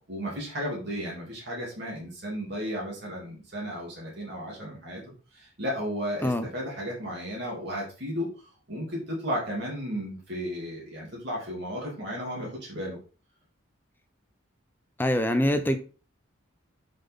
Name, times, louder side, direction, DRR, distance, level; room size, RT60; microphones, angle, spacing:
voice 1, 0.1-5.0 5.3-13.0, equal, 55° right, 2.8 m, -34 dB
voice 2, 15.0-15.8, left 1 dB, 10° left, 0.6 m, -24 dB
7.3 x 5.7 x 3.7 m
head